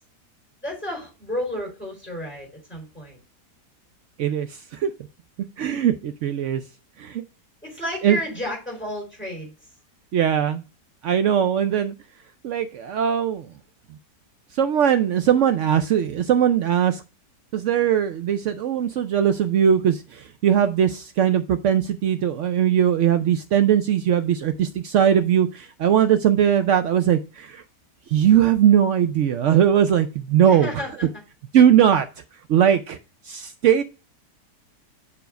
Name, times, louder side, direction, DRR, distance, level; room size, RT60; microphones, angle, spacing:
voice 1, 0.6-3.2 7.6-9.7 30.4-31.1, left 1 dB, 5° left, -1 dB, 4.5 m, -32 dB
voice 2, 4.2-4.9 5.6-6.6 7.0-7.2 8.0-8.2 10.1-10.6 11.0-11.9 12.4-13.5 14.5-17.0 17.5-27.6 28.1-30.7 31.5-32.1 32.5-33.0 33.3-33.8, right 9 dB, 85° right, 10 dB, 0.6 m, -20 dB
6.9 x 3.5 x 5.0 m, 0.31 s
omnidirectional pair, 1.8 m